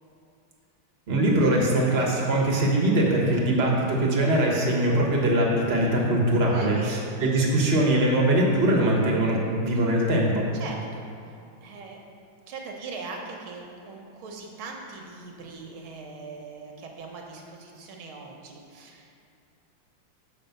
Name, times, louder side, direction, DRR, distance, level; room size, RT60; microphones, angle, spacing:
voice 1, 1.1-10.5, right 1 dB, 35° right, -2 dB, 1.4 m, -22 dB
voice 2, 6.5-7.0 10.5-11.0 11.6-12.0 12.5-19.2, right 4 dB, 85° right, 1 dB, 1.9 m, -40 dB
6.8 x 5.5 x 6.7 m, 2.5 s
omnidirectional pair, 2.2 m